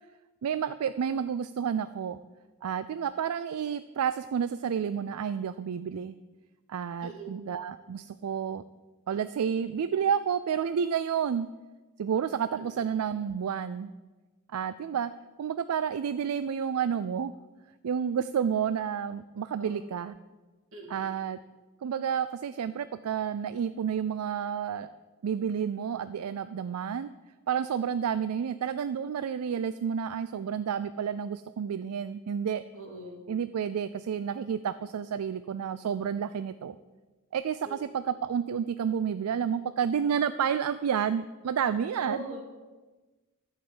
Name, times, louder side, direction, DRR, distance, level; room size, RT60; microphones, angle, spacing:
voice 1, 0.4-2.2 2.6-6.1 6.7-8.6 9.1-11.5 12.0-13.9 14.5-15.1 15.4-17.3 17.8-20.2 20.9-21.4 21.8-24.9 25.2-27.1 27.5-32.6 33.3-36.8 37.3-42.2, right 7 dB, 80° right, 13 dB, 0.4 m, -30 dB
voice 2, 7.0-7.4 12.5-12.7 19.6-19.9 20.7-21.0 32.7-33.3 37.6-37.8 41.9-42.4, right 2 dB, 60° right, 1 dB, 2.6 m, -41 dB
12.0 x 5.6 x 7.8 m, 1.2 s
head